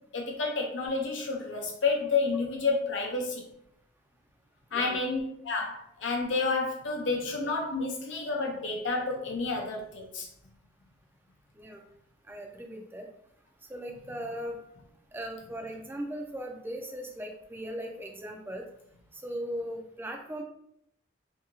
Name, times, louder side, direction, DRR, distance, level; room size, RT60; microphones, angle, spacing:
voice 1, 0.1-3.4 4.7-10.3, left 3 dB, 85° left, 0 dB, 0.7 m, -30 dB
voice 2, 12.3-13.1 13.7-14.6 15.1-18.7 19.1-20.4, equal, 10° right, 3 dB, 0.3 m, -38 dB
2.7 x 2.7 x 2.6 m, 0.74 s
head